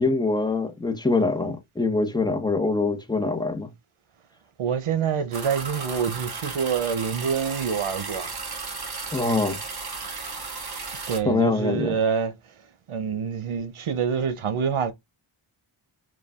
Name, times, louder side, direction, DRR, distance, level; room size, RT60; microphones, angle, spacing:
voice 1, 0.0-3.7 9.1-9.6 11.2-12.0, left 3 dB, 10° left, 0.8 m, -24 dB
voice 2, 4.6-8.3 11.1-12.3 12.9-14.9, right 7 dB, 80° right, 0.8 m, -26 dB
sound 1, 5.3-11.2, right 4 dB, 50° right, 1.3 m, -35 dB
4.7 x 2.3 x 3.5 m
wide cardioid pair, 105°, 50 cm